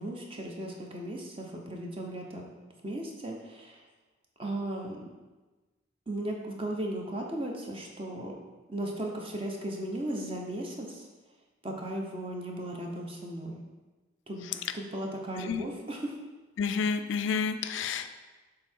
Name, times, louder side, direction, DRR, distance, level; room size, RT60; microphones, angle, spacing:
voice 1, 0.0-2.4 2.8-3.8 4.4-5.0 6.1-8.3 8.7-11.1 11.6-13.6 14.3-14.5 14.7-16.2, right 1 dB, 25° right, 0 dB, 0.8 m, -36 dB
voice 2, 16.6-18.1, left 5 dB, 70° left, 10 dB, 0.4 m, -29 dB
6.8 x 3.7 x 4.4 m, 1.2 s
head